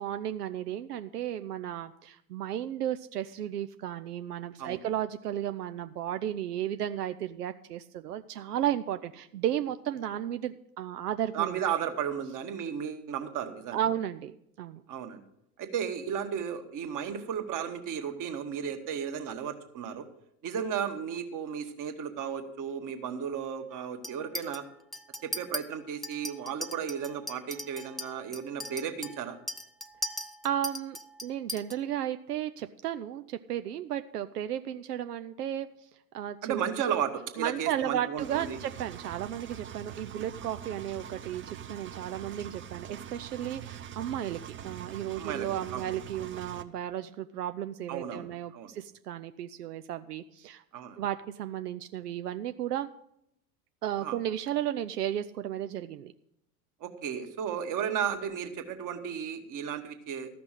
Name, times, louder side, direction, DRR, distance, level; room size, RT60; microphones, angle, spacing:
voice 1, 0.0-11.6 13.7-14.8 30.4-36.6 37.4-50.6 51.0-52.9 53.8-56.1, right 11 dB, 85° right, 10 dB, 0.6 m, -34 dB
voice 2, 11.3-13.8 14.9-15.2 15.6-20.0 20.4-24.6 25.2-29.4 36.4-38.6 45.2-45.8 47.9-48.7 50.7-51.0 54.0-54.2 56.8-60.3, right 8 dB, 40° right, 6 dB, 1.6 m, -34 dB
Chink clink, 24.0-24.6 24.9-25.6 26.0-31.8, left 1 dB, ahead, 0.4 m, -39 dB
Engine, 38.2-46.6, right 9 dB, 25° right, 0.7 m, -43 dB
13.5 x 6.0 x 7.4 m, 0.78 s
hypercardioid pair, 80°, 46 cm